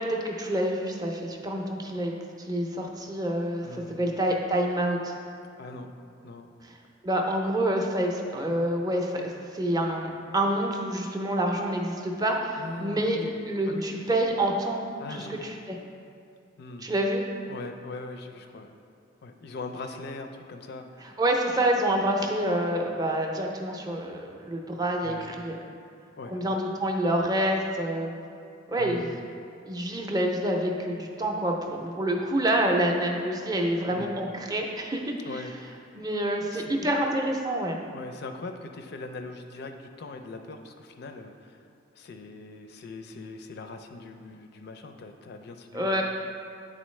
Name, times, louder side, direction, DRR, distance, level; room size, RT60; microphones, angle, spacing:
voice 1, 0.0-5.1 7.0-15.8 16.8-17.2 21.2-25.6 26.3-28.1 28.7-29.1 29.7-35.4 36.0-37.8 45.7-46.0, right 1 dB, 20° right, 1 dB, 0.5 m, -27 dB
voice 2, 3.6-4.0 5.6-5.9 6.2-6.5 12.5-13.3 13.7-13.9 15.0-15.5 16.6-16.9 17.5-18.7 19.2-21.2 25.0-25.3 26.2-26.4 28.8-29.1 33.9-34.2 35.3-35.5 35.8-36.0 36.5-36.8 37.9-41.7 41.9-46.0, left 3 dB, 55° left, 6 dB, 0.4 m, -41 dB
8.9 x 3.8 x 3.1 m, 2.4 s
head